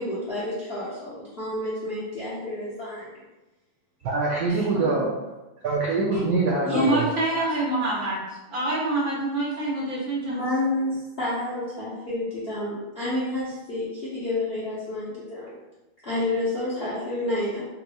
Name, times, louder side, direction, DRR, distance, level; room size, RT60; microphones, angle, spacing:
voice 1, 0.0-3.2 4.5-4.6 6.1-6.2 6.6-6.9 10.3-15.6 16.0-17.7, left 2 dB, 60° left, -10 dB, 0.6 m, -29 dB
voice 2, 4.0-5.1 5.6-7.1, right 3 dB, 90° right, -4 dB, 0.8 m, -24 dB
voice 3, 4.7-5.1 6.7-8.2 8.5-10.4, right 2 dB, 50° right, -6 dB, 1.4 m, -26 dB
4.0 x 3.0 x 2.2 m, 1.0 s
omnidirectional pair, 2.3 m